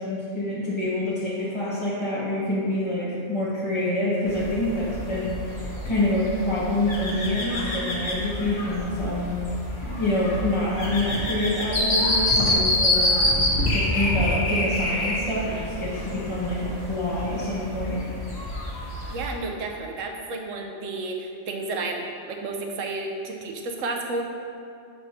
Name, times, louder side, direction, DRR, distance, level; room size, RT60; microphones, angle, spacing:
voice 1, 0.0-9.4 10.0-13.3 13.6-18.0, left 1 dB, 25° left, -9 dB, 0.9 m, -26 dB
sound 1, 4.3-19.3, left 1 dB, 60° left, 1.5 m, -27 dB
voice 2, 19.1-24.2, right 2 dB, 85° right, 2 dB, 1.1 m, -31 dB
6.1 x 4.3 x 5.7 m, 2.4 s
omnidirectional pair, 1.3 m